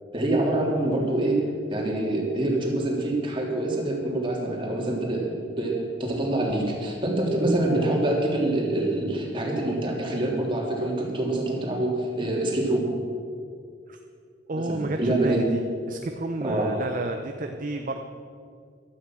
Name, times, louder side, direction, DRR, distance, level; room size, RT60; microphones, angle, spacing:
voice 1, 0.1-12.9 14.5-15.4 16.4-16.8, right 1 dB, 30° right, -2 dB, 3.4 m, -26 dB
voice 2, 14.5-15.6 15.9-18.0, right 2 dB, 45° right, 5 dB, 0.8 m, -31 dB
15.0 x 13.0 x 6.2 m, 2.3 s
head